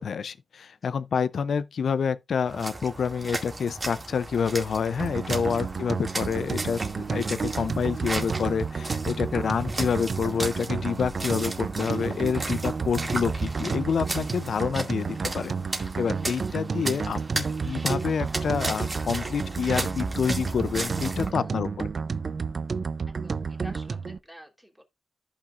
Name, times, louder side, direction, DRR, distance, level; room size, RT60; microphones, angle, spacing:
voice 1, 0.0-6.8 7.1-21.9, left 6 dB, 80° left, 0.5 m, -28 dB
sound 1, 2.5-21.3, right 2 dB, 30° right, 2.2 m, -35 dB
sound 2, 5.0-24.2, right 5 dB, 60° right, 0.6 m, -31 dB
voice 2, 23.1-24.8, equal, 5° right, 3.0 m, -50 dB
14.0 x 5.8 x 2.5 m
cardioid pair, 80°, 0 cm